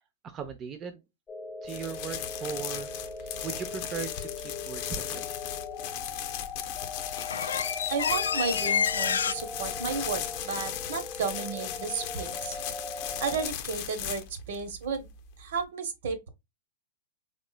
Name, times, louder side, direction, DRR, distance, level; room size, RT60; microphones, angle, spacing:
voice 1, 0.2-1.0 1.6-2.9 3.2-5.2, right 7 dB, 30° right, 0.6 m, -38 dB
sound 1, 1.3-13.5, left 4 dB, 15° left, 1.0 m, -40 dB
sound 2, 1.7-15.6, left 10 dB, 50° left, 0.6 m, -38 dB
sound 3, 2.8-2.9 6.5-6.6 6.9-9.3, left 7 dB, 85° left, 0.3 m, -28 dB
voice 2, 7.9-12.6 13.2-15.1 15.4-16.3, right 5 dB, 70° right, 1.1 m, -33 dB
3.8 x 3.0 x 2.2 m
hypercardioid pair, 120°, 0 cm